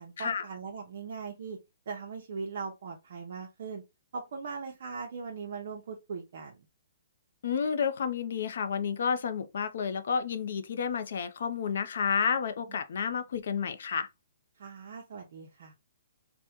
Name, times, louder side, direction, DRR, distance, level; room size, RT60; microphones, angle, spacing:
voice 1, 0.0-1.6 1.9-3.8 4.1-6.6 12.7-12.8 14.6-15.7, right 5 dB, 55° right, 0.6 m, -40 dB
voice 2, 7.4-14.1, left 6 dB, 60° left, 0.4 m, -30 dB
3.4 x 2.1 x 2.8 m
hypercardioid pair, 170°, 0 cm